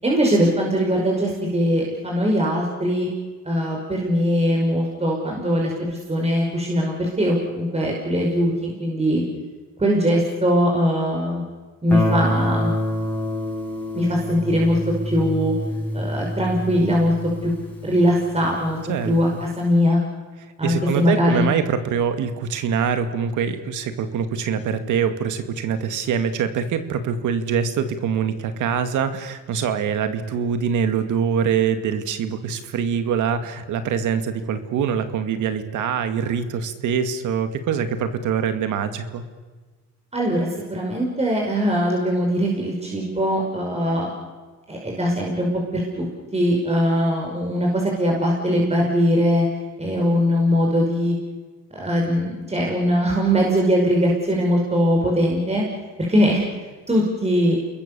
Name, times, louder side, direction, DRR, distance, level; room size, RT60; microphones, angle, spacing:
voice 1, 0.0-3.1 3.4-9.2 9.8-11.4 11.8-12.7 13.9-14.8 15.0-15.5 15.9-17.1 17.4-17.5 17.8-18.8 19.1-20.0 20.6-21.5 40.1-44.1 44.7-46.1 46.3-49.5 49.8-51.2 51.7-55.6 56.1-56.4 56.9-57.6, equal, 20° right, -1 dB, 5.7 m, -21 dB
Guitar, 11.9-18.6, equal, 5° left, 6.7 m, -27 dB
voice 2, 18.9-19.4 20.6-39.2, right 7 dB, 80° right, 9 dB, 2.2 m, -24 dB
29.0 x 21.5 x 7.0 m, 1.3 s
cardioid pair, 90°, 30 cm